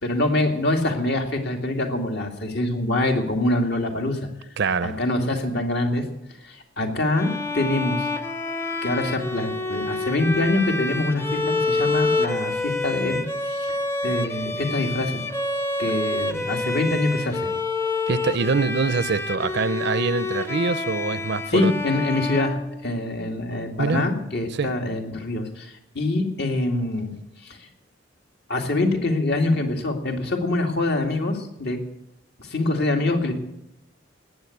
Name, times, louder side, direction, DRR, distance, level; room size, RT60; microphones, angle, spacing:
voice 1, 0.0-4.3 4.8-6.0 6.4-8.1 8.8-13.2 13.5-13.8 14.0-15.2 15.8-17.5 21.5-27.1 27.4-27.7 28.5-31.8 32.4-33.3, left 2 dB, 60° left, 2.4 m, -25 dB
voice 2, 4.6-5.0 18.1-21.7 23.8-24.1 24.5-24.7, right 4 dB, 60° right, 0.6 m, -24 dB
Bowed string instrument, 7.2-23.2, left 3 dB, 15° left, 0.8 m, -28 dB
18.5 x 8.4 x 8.5 m
head